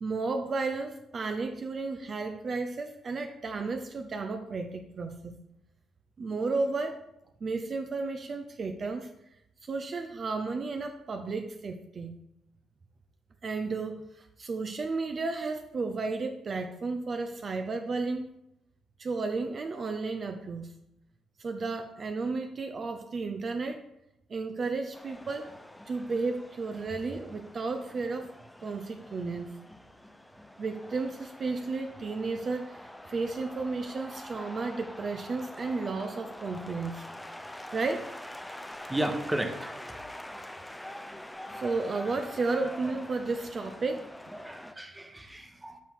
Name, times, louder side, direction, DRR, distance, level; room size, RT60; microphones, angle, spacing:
voice 1, 0.0-5.3 6.2-7.0 7.4-9.1 9.6-12.2 13.4-18.3 19.0-20.7 21.4-23.8 24.3-25.5 25.9-28.3 28.6-29.5 30.6-37.1 37.7-38.1 41.5-44.1, right 3 dB, 45° right, 6 dB, 0.7 m, -33 dB
sound 1, 24.9-44.7, left 1 dB, 5° left, 0.6 m, -45 dB
voice 2, 38.9-39.9 44.3-45.8, right 1 dB, 10° right, 6 dB, 1.1 m, -34 dB
13.5 x 4.5 x 3.7 m, 0.83 s
cardioid pair, 90°, 0 cm